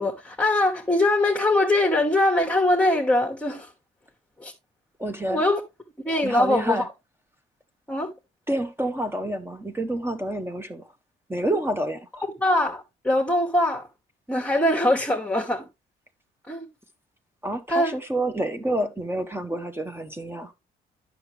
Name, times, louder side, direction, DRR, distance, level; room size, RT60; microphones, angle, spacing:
voice 1, 0.0-3.7 4.4-4.5 5.3-5.6 6.0-6.9 7.9-8.1 12.4-13.9 14.3-15.7 16.5-16.7 17.7-18.0, left 1 dB, 5° left, 1.2 m, -22 dB
voice 2, 5.0-5.4 6.2-6.9 8.5-10.9 11.3-12.3 17.4-20.5, right 1 dB, 10° right, 0.8 m, -28 dB
8.8 x 6.0 x 3.2 m
cardioid pair, 90°, 20 cm